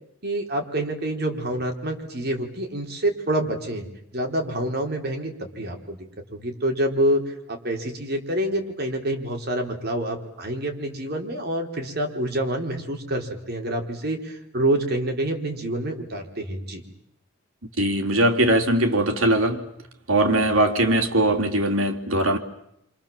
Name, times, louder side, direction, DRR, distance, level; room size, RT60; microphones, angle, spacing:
voice 1, 0.2-3.9 4.1-6.0 6.3-16.8, right 1 dB, 50° right, 3 dB, 4.4 m, -27 dB
voice 2, 17.8-19.7 20.1-22.4, right 1 dB, 75° right, 5 dB, 3.2 m, -20 dB
28.5 x 26.5 x 7.4 m, 0.78 s
head